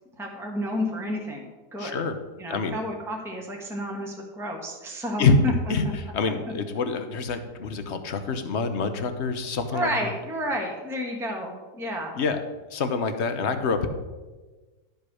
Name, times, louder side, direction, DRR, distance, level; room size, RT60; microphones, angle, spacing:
voice 1, 0.2-1.4 1.7-2.0 2.4-5.5 9.7-12.1, equal, ahead, 0 dB, 1.3 m, -31 dB
voice 2, 1.8-2.2 2.5-2.8 5.2-5.4 5.7-10.1 12.2-12.4 12.7-13.9, left 4 dB, 50° left, 8 dB, 1.0 m, -26 dB
12.0 x 5.4 x 6.2 m, 1.2 s
omnidirectional pair, 1.8 m